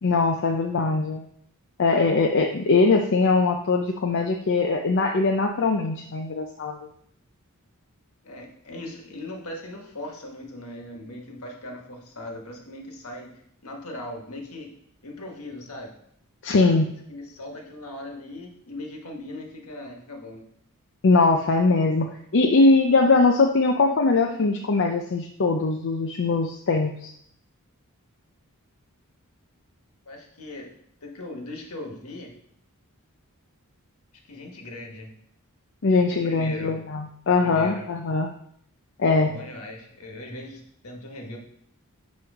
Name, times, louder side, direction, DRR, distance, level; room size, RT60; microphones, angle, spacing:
voice 1, 0.0-1.2 1.8-6.8 16.4-16.9 21.0-27.1 35.8-38.3 39.0-39.3, left 3 dB, 55° left, 2 dB, 0.5 m, -21 dB
voice 2, 8.2-13.3 13.6-14.7 15.0-15.9 17.1-20.4 30.0-30.7 31.0-32.3 34.3-35.1 36.1-36.8 37.4-37.9 39.1-41.4, left 1 dB, 75° left, 1 dB, 1.5 m, -39 dB
9.4 x 3.2 x 4.8 m, 0.70 s
head